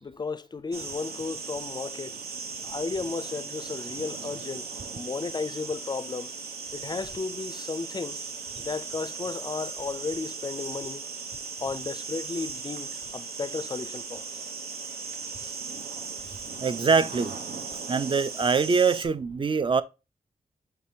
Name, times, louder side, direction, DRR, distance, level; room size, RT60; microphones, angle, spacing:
voice 1, 0.0-2.2 2.6-6.3 6.7-8.2 8.6-11.1 11.6-14.2 15.4-15.6, left 4 dB, 30° left, 0.4 m, -34 dB
sound 1, 0.7-19.1, right 4 dB, 85° right, 0.8 m, -38 dB
voice 2, 16.6-17.3 17.9-19.8, right 5 dB, 30° right, 0.4 m, -23 dB
5.8 x 3.3 x 2.7 m
cardioid pair, 75°, 16 cm